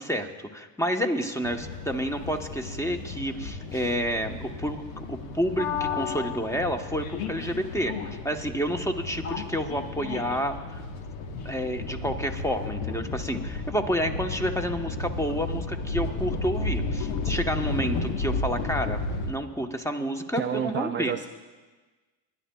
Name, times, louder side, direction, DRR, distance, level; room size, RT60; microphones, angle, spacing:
voice 1, 0.0-10.8 11.4-19.0 19.3-21.1, equal, 5° left, 5 dB, 1.0 m, -29 dB
sound 1, 1.4-19.3, left 3 dB, 85° left, 1.2 m, -33 dB
voice 2, 20.4-21.3, right 8 dB, 25° right, 6 dB, 0.4 m, -29 dB
27.0 x 11.0 x 2.3 m, 1.3 s
supercardioid pair, 90°, 47 cm